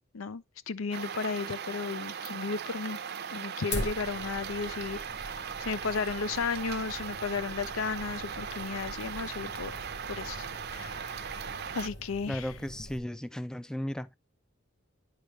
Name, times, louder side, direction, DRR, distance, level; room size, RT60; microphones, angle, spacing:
voice 1, 0.1-3.0 3.3-9.8 10.1-10.5 10.7-12.5, left 5 dB, 90° left, 0.6 m, -34 dB
sound 1, 0.9-11.9, right 7 dB, 55° right, 0.6 m, -39 dB
Fire, 3.7-13.0, left 1 dB, 60° left, 1.9 m, -43 dB
voice 2, 12.3-14.1, equal, 5° left, 0.3 m, -35 dB
9.9 x 4.8 x 3.2 m
head